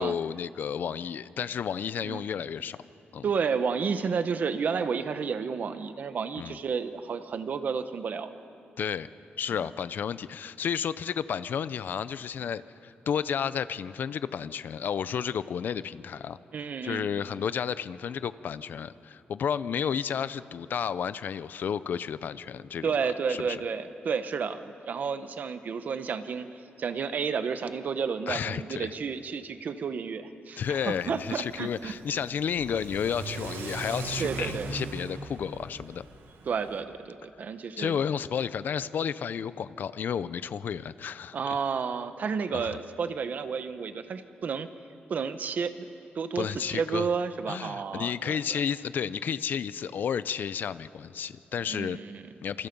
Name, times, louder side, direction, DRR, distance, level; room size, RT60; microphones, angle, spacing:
voice 1, 0.0-2.8 3.1-3.2 6.4-6.6 8.8-9.1 9.4-16.4 16.8-22.9 23.3-23.6 28.3-28.9 30.6-36.0 37.8-41.4 42.5-42.8 46.4-47.1 47.5-52.0 52.4-52.7, left 7 dB, 60° left, 16 dB, 0.5 m, -32 dB
voice 2, 3.2-8.3 16.5-17.1 22.8-26.5 26.8-31.9 34.2-34.7 36.5-38.0 41.3-44.7 45.1-45.7 46.1-48.4 51.7-52.3, right 6 dB, 50° right, 10 dB, 1.0 m, -31 dB
Car / Accelerating revving vroom, 30.6-36.8, right 4 dB, 85° right, 1.9 m, -40 dB
27.5 x 27.0 x 5.4 m, 2.7 s
wide cardioid pair, 180°, 4 cm